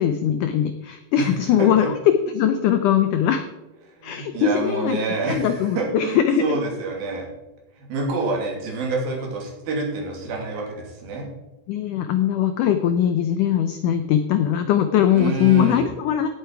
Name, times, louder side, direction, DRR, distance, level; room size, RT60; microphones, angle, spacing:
voice 1, 0.0-2.0 2.3-3.5 4.0-5.0 5.3-6.4 11.7-16.3, left 9 dB, 80° left, 8 dB, 1.8 m, -21 dB
voice 2, 1.6-1.9 4.0-7.3 7.8-11.3 15.1-15.8, right 3 dB, 70° right, -1 dB, 4.5 m, -27 dB
17.0 x 8.1 x 4.7 m, 1.0 s
omnidirectional pair, 4.5 m